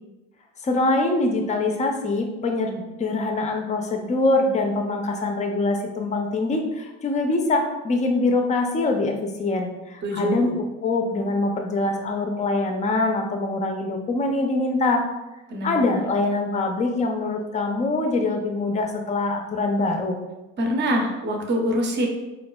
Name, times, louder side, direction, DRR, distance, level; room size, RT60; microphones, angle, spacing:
voice 1, 0.6-15.0 15.6-20.2, left 2 dB, 20° left, 3 dB, 0.5 m, -24 dB
voice 2, 10.0-10.6 15.5-15.8 20.6-22.1, equal, 35° right, 1 dB, 0.7 m, -24 dB
4.0 x 2.3 x 2.2 m, 1.1 s
supercardioid pair, 85°, 32 cm